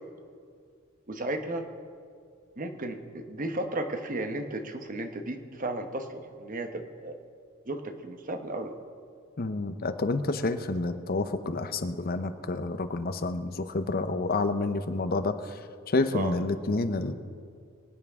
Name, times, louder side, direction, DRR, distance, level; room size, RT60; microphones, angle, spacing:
voice 1, 1.1-1.7 2.6-7.2 7.7-8.7 16.1-16.3, right 2 dB, 40° right, 6 dB, 1.0 m, -34 dB
voice 2, 9.4-15.6 15.9-17.1, left 2 dB, 45° left, 10 dB, 0.7 m, -29 dB
24.5 x 9.3 x 3.6 m, 2.2 s
head